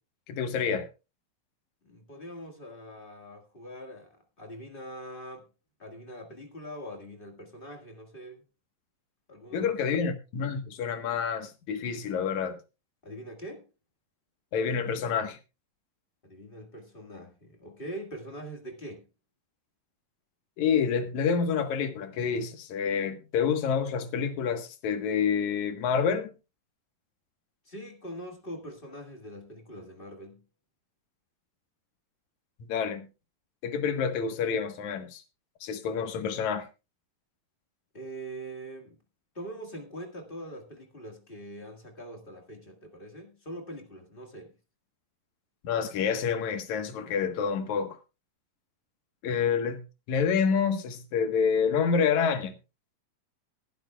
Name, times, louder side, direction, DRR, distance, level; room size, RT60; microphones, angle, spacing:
voice 1, 0.3-0.9 9.5-12.6 14.5-15.4 20.6-26.3 32.7-33.1 33.6-35.2 35.6-36.7 45.6-48.0 49.2-49.8 50.1-52.5, left 6 dB, 60° left, 2.5 m, -28 dB
voice 2, 1.8-5.5 5.8-8.4 9.3-9.9 13.0-13.6 16.2-19.0 27.6-30.4 37.9-39.0 39.3-44.5, right 1 dB, 30° left, 0.9 m, -43 dB
20.5 x 11.5 x 2.3 m
omnidirectional pair, 4.1 m